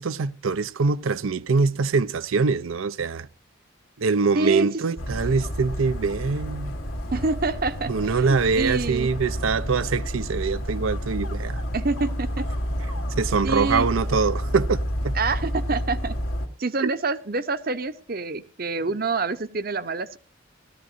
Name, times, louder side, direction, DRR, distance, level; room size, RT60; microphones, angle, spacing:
voice 1, 0.0-3.3 4.0-6.8 7.9-11.6 13.2-15.1, right 4 dB, 80° right, 0.5 m, -24 dB
voice 2, 4.3-4.7 7.1-9.1 11.7-12.5 13.4-13.9 15.1-16.2 16.6-20.2, right 3 dB, 45° right, 0.8 m, -27 dB
Dog, 5.0-16.5, equal, 85° left, 2.2 m, -30 dB
17.5 x 13.5 x 2.6 m
head